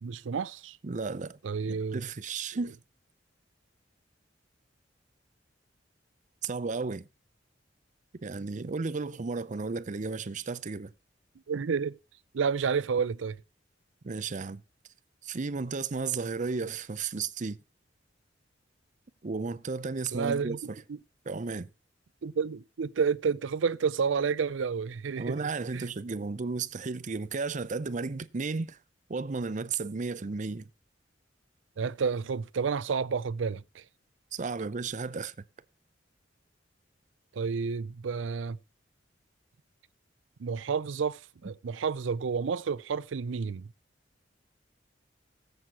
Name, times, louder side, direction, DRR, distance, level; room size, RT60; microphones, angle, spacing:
voice 1, 0.0-0.8 1.4-2.0 11.5-12.0 12.3-13.4 20.1-20.6 20.9-21.0 22.2-25.8 31.8-33.8 37.3-38.6 40.4-43.6, right 5 dB, 90° right, 0.5 m, -30 dB
voice 2, 0.8-1.4 1.6-2.8 6.4-7.1 8.2-10.9 14.0-14.6 15.2-17.6 19.2-20.6 21.3-21.7 25.2-28.8 29.1-30.7 34.3-35.3, right 4 dB, 40° right, 0.6 m, -33 dB
18.5 x 7.9 x 2.9 m
head